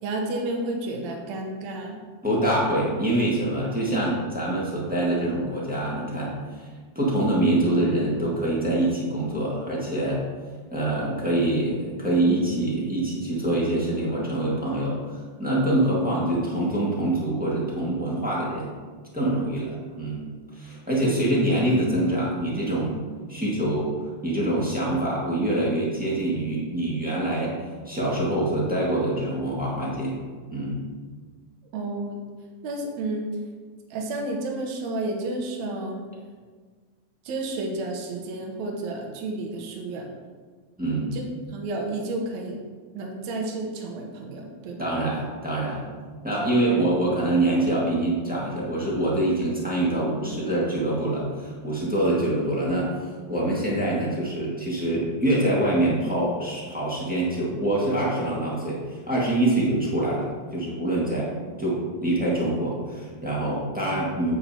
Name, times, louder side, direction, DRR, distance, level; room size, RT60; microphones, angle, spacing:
voice 1, 0.0-2.0 31.7-32.2 32.6-33.3 33.9-36.0 37.3-40.1 41.1-41.2 41.5-42.6 42.9-44.9, right 2 dB, 75° right, 1 dB, 2.3 m, -31 dB
voice 2, 2.2-6.3 6.6-6.7 6.9-10.2 10.7-15.0 15.4-18.7 19.1-20.2 20.5-22.9 23.3-23.9 24.2-27.5 27.8-30.2 30.5-30.8 40.8-41.1 44.8-45.9 46.2-61.3 61.6-64.4, right 1 dB, 5° right, -6 dB, 1.2 m, -25 dB
8.5 x 8.4 x 2.9 m, 1.5 s
omnidirectional pair, 3.3 m